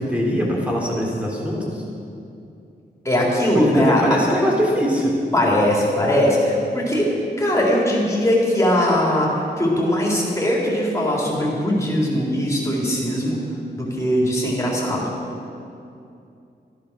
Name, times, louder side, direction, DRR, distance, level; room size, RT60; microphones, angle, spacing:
voice 1, 0.0-1.8 3.6-5.1, equal, 5° right, -3 dB, 3.6 m, -22 dB
voice 2, 3.0-4.2 5.3-7.1 7.4-13.4 13.8-15.1, left 1 dB, 15° left, -4 dB, 3.8 m, -20 dB
14.5 x 12.0 x 6.3 m, 2.6 s
wide cardioid pair, 115°, 18 cm